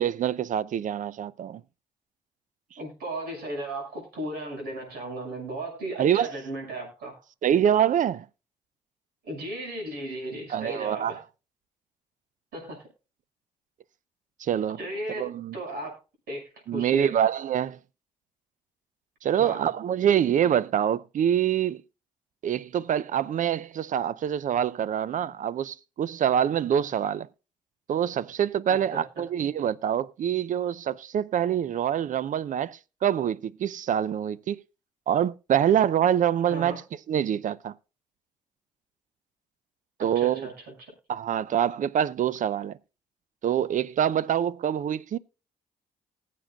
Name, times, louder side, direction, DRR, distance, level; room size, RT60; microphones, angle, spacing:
voice 1, 0.0-1.6 6.0-6.3 7.4-8.3 10.5-11.2 14.4-14.8 15.2-15.6 16.7-17.8 19.2-21.8 22.4-27.3 27.9-34.6 35.1-36.8 37.1-37.7 40.0-40.5 41.1-42.8 43.4-45.2, right 9 dB, 55° right, 0.5 m, -25 dB
voice 2, 2.8-7.2 9.2-11.2 12.5-12.9 14.8-16.0 16.3-17.1 19.3-19.7 28.7-29.0 36.5-36.8 40.0-40.9, right 1 dB, 75° right, 6.0 m, -36 dB
20.0 x 7.6 x 2.4 m
hypercardioid pair, 55°, 16 cm